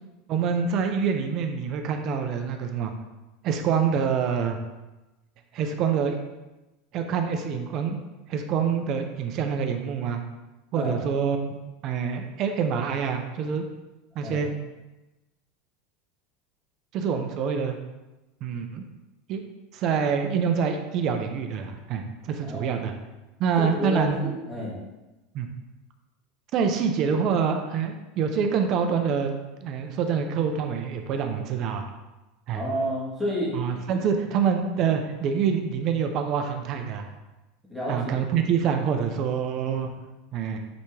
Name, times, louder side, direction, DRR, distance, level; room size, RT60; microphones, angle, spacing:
voice 1, 0.3-2.9 3.4-4.6 5.5-6.2 6.9-8.0 8.3-10.2 10.7-11.6 11.8-13.6 14.2-14.5 16.9-17.8 18.4-18.8 19.3-19.4 19.7-22.9 23.4-24.2 25.3-25.5 26.5-29.3 29.6-31.9 32.5-32.6 33.5-37.1 37.9-39.9 40.3-40.6, right 6 dB, 35° right, 5 dB, 0.5 m, -26 dB
voice 2, 22.4-22.8 23.6-24.8 32.5-33.5 37.7-38.2, equal, ahead, -7 dB, 1.8 m, -30 dB
8.4 x 3.5 x 3.2 m, 1.1 s
supercardioid pair, 165°, 0 cm